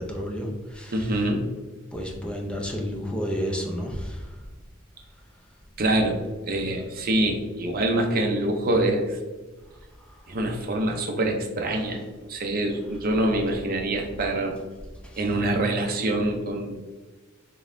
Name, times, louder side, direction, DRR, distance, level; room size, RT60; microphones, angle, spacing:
voice 1, 0.0-1.1 1.9-4.4 10.1-10.2 15.0-15.2, equal, 5° left, 0 dB, 0.5 m, -31 dB
voice 2, 0.9-1.4 5.8-6.2 6.4-9.2 10.3-12.0 12.3-14.5 15.1-16.8, right 1 dB, 45° right, 2 dB, 0.6 m, -25 dB
3.9 x 3.6 x 2.5 m, 1.3 s
head